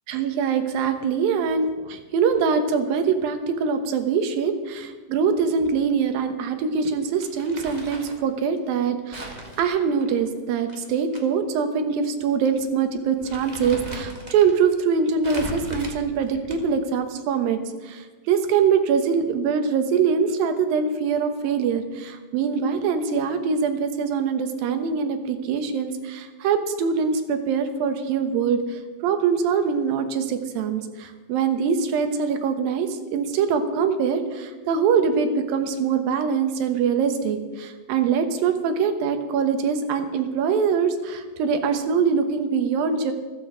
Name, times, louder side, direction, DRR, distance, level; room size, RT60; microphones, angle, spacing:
voice 1, 0.1-17.6 17.8-43.1, right 6 dB, 80° right, 8 dB, 2.9 m, -23 dB
Crumpling crinkling, 7.2-8.2 9.1-11.2 11.5-11.6 12.4-12.6 13.0-14.5 15.2-16.8, equal, 30° right, 0.8 m, -38 dB
14.5 x 14.5 x 5.0 m, 1.3 s
omnidirectional pair, 4.1 m